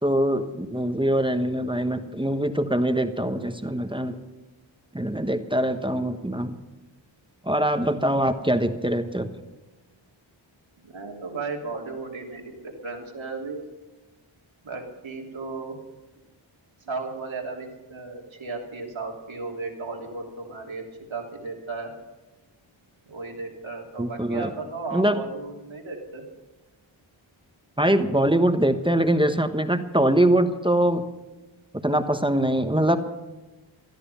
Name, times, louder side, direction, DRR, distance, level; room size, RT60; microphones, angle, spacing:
voice 1, 0.0-4.2 4.9-6.6 7.4-9.3 24.0-24.5 24.9-25.2 27.8-31.0 31.8-33.0, right 1 dB, 10° right, 8 dB, 1.2 m, -23 dB
voice 2, 10.8-13.6 14.6-15.7 16.9-20.8 21.1-21.9 23.1-26.2, right 3 dB, 70° right, 0 dB, 3.3 m, -35 dB
17.5 x 12.5 x 5.7 m, 1.1 s
wide cardioid pair, 70°, 49 cm